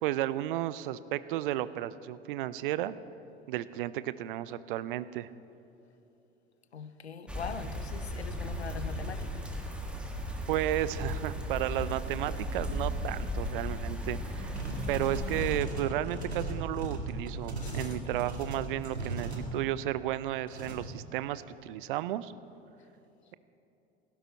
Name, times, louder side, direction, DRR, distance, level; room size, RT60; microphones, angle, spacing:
voice 1, 0.0-2.9 3.5-5.3 10.5-14.5 14.9-22.3, right 13 dB, 55° right, 0.6 m, -33 dB
voice 2, 6.7-9.5 17.6-18.0, left 6 dB, 80° left, 0.7 m, -42 dB
sound 1, 7.3-15.6, equal, 5° right, 1.8 m, -37 dB
sound 2, 8.4-19.5, right 2 dB, 20° right, 2.9 m, -42 dB
sound 3, 14.5-19.4 20.5-20.8, right 3 dB, 80° right, 1.9 m, -37 dB
17.5 x 15.5 x 4.3 m
figure-of-eight pair, 75°, 32 cm